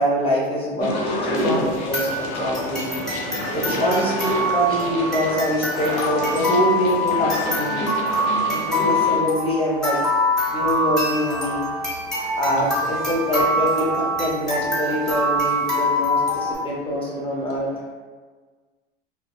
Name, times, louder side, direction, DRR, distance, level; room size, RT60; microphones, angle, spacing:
voice 1, 0.0-3.0 3.5-8.0 8.5-10.0 10.5-11.7 12.4-17.7, equal, 20° left, -4 dB, 0.5 m, -24 dB
sound 1, 0.8-9.2, left 1 dB, 60° left, 0.7 m, -29 dB
sound 2, 1.4-16.6, left 1 dB, ahead, 1.1 m, -24 dB
voice 2, 3.5-3.8 10.3-10.9 11.4-12.7 14.9-15.1 15.7-17.9, right 1 dB, 55° right, -3 dB, 0.9 m, -43 dB
2.7 x 2.1 x 2.2 m, 1.4 s
hypercardioid pair, 100°, 30 cm